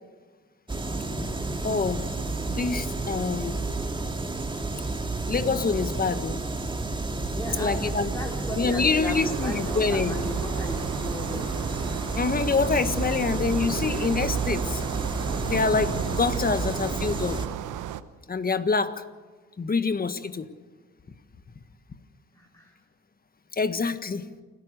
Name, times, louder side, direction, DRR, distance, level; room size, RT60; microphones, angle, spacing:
sound 1, 0.7-17.5, right 3 dB, 15° right, 2.2 m, -31 dB
voice 1, 1.6-2.0 2.5-3.6 5.3-6.4 7.2-7.3 7.6-8.1 8.6-10.1 12.2-14.8 15.4-17.4 18.3-19.0 19.6-20.5 23.6-24.2, left 4 dB, 30° left, 11 dB, 1.5 m, -26 dB
voice 2, 7.3-11.5 22.3-22.7, equal, 10° left, 0 dB, 3.9 m, -36 dB
sound 2, 9.1-18.0, right 11 dB, 80° right, 1.1 m, -34 dB
29.0 x 13.5 x 6.8 m, 1.4 s
cardioid pair, 90°, 30 cm